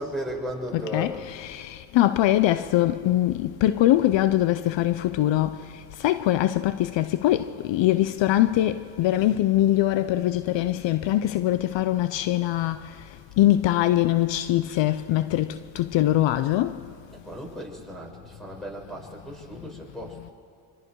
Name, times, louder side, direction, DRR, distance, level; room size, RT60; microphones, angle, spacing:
voice 1, 0.0-1.3 17.1-20.2, equal, ahead, 6.2 m, -35 dB
voice 2, 0.7-5.6 6.0-12.8 13.4-16.7, left 14 dB, 70° left, 0.8 m, -22 dB
25.5 x 25.5 x 4.7 m
supercardioid pair, 75°, 47 cm